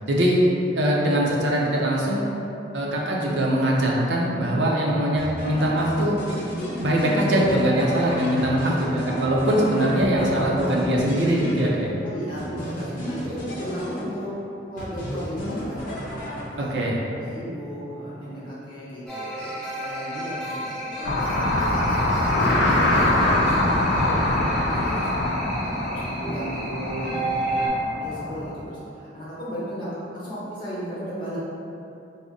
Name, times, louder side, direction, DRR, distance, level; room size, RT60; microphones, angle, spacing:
voice 1, 0.1-0.4 0.7-2.3 2.7-6.2 6.8-11.9 16.6-17.0, right 1 dB, 80° right, -3 dB, 0.5 m, -22 dB
sound 1, 5.2-12.0 12.4-14.4 14.8-16.8, equal, 50° left, 0.8 m, -33 dB
voice 2, 12.0-14.3 14.6-15.8 16.4-22.5 23.2-31.4, equal, 30° left, -10 dB, 1.0 m, -36 dB
sound 2, 19.1-27.7, right 1 dB, ahead, 0.7 m, -32 dB
sound 3, 21.0-28.5, left 1 dB, 85° left, 0.4 m, -23 dB
3.8 x 2.1 x 3.6 m, 2.7 s
head